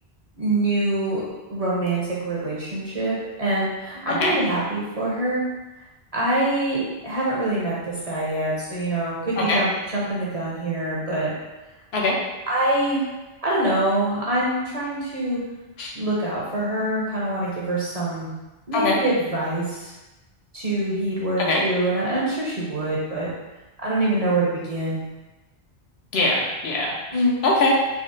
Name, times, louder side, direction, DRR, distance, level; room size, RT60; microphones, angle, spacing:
voice 1, 0.4-1.2 1.5-3.1 3.4-5.4 6.1-11.3 12.5-13.1 13.4-15.4 16.0-18.3 18.7-19.9 20.5-23.3 23.8-25.0 27.1-27.4, right 1 dB, 45° right, -6 dB, 0.5 m, -25 dB
voice 2, 4.1-4.4 9.4-9.6 11.9-12.2 15.8-15.9 18.7-19.0 21.4-21.6 26.1-27.7, left 2 dB, 75° left, -2 dB, 0.8 m, -22 dB
3.6 x 2.0 x 2.5 m, 1.1 s
omnidirectional pair, 1.1 m